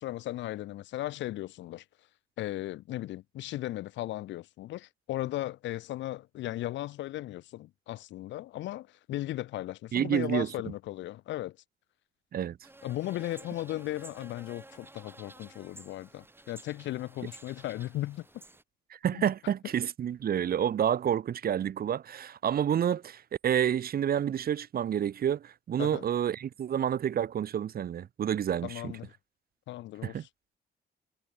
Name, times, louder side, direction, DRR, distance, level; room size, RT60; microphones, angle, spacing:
voice 1, 0.0-1.8 2.4-11.6 12.8-18.3 19.1-19.3 25.8-26.1 28.6-29.1 29.7-30.3, left 15 dB, 75° left, 0.5 m, -36 dB
voice 2, 9.9-10.5 12.3-12.6 19.0-28.9 30.0-30.2, right 9 dB, 50° right, 1.0 m, -29 dB
sound 1, 12.6-18.6, right 2 dB, 10° right, 2.6 m, -52 dB
cardioid pair, 105°, 19 cm